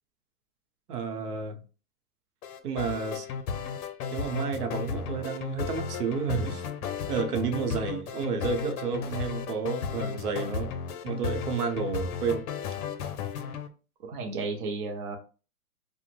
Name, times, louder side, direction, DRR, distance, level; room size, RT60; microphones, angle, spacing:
voice 1, 0.9-1.6 2.6-3.3 4.1-6.7 7.1-10.7 11.0-12.4, right 5 dB, 75° right, 0.8 m, -31 dB
sound 1, 2.4-13.7, left 6 dB, 70° left, 0.6 m, -34 dB
voice 2, 14.1-15.2, right 3 dB, 40° right, 0.5 m, -33 dB
2.9 x 2.1 x 3.0 m
hypercardioid pair, 150°, 47 cm